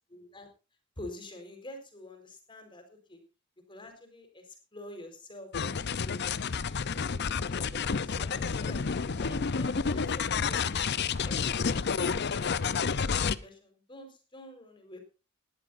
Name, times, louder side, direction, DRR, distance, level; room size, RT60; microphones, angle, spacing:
voice 1, 0.1-0.5 1.0-3.2 3.7-5.5 6.0-8.9 9.2-10.9 11.2-11.6 12.0-12.9 13.2-15.0, left 1 dB, 25° left, 6 dB, 4.3 m, -47 dB
sound 1, 5.5-13.4, left 5 dB, 55° left, 0.6 m, -30 dB
19.5 x 13.5 x 2.6 m, 0.32 s
head